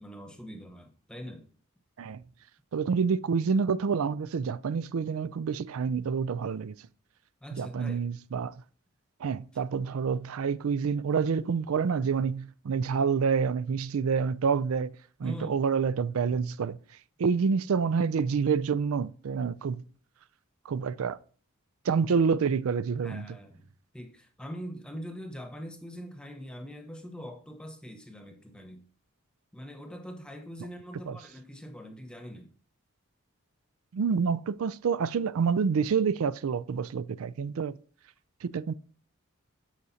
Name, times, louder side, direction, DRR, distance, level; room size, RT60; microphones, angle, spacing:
voice 1, 0.0-1.5 7.4-8.1 15.2-15.6 23.0-28.8 29.5-32.5, equal, 5° left, 1.0 m, -43 dB
voice 2, 2.7-6.8 7.5-8.5 9.2-16.8 17.2-19.8 20.7-21.2 21.9-23.3 31.1-31.2 33.9-37.8 38.4-38.7, right 6 dB, 80° right, 0.4 m, -28 dB
13.0 x 4.9 x 2.8 m
head